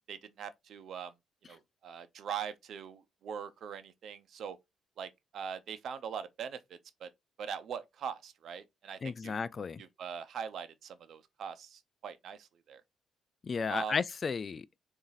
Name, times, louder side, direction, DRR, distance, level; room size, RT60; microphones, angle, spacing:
voice 1, 0.1-1.1 1.5-4.6 5.0-7.1 7.4-9.3 9.8-12.8 13.7-13.9, right 7 dB, 65° right, 0.7 m, -42 dB
voice 2, 9.0-9.8 13.4-14.7, left 5 dB, 40° left, 0.3 m, -33 dB
4.1 x 2.6 x 4.0 m
cardioid pair, 90°, 0 cm